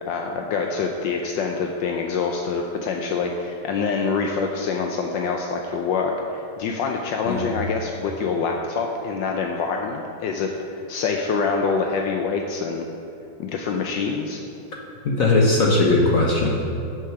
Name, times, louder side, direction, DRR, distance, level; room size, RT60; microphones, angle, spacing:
voice 1, 0.0-12.9 13.4-14.4, left 5 dB, 75° left, 2 dB, 1.3 m, -25 dB
voice 2, 15.0-16.6, left 2 dB, 55° left, -2 dB, 1.1 m, -19 dB
8.4 x 7.6 x 5.9 m, 2.7 s
omnidirectional pair, 2.1 m